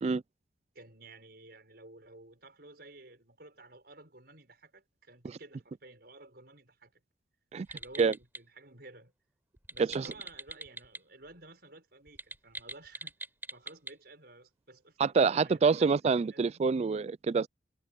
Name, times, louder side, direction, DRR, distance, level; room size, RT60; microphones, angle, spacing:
voice 1, 0.7-7.0 7.7-9.1 9.7-13.1 13.5-16.6, right 2 dB, 60° right, 6.1 m, -53 dB
sound 1, 7.6-8.4 9.6-11.0 11.3-11.4 12.1-13.9, right 2 dB, 10° right, 5.3 m, -43 dB
voice 2, 15.0-17.5, right 5 dB, 35° right, 0.3 m, -26 dB
head